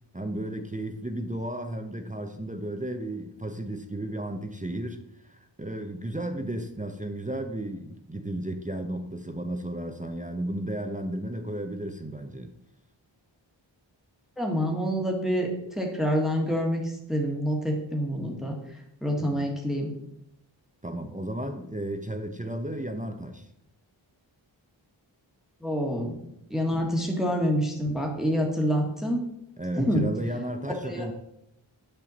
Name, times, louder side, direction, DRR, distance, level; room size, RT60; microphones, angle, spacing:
voice 1, 0.1-12.5 19.2-19.5 20.8-23.5 26.7-27.0 29.6-31.1, right 1 dB, 15° right, 5 dB, 0.7 m, -34 dB
voice 2, 14.4-19.9 25.6-26.2 26.5-29.2 29.8-30.0 30.9-31.1, equal, ahead, 0 dB, 1.5 m, -27 dB
8.4 x 5.5 x 4.1 m, 0.78 s
wide cardioid pair, 40°, 47 cm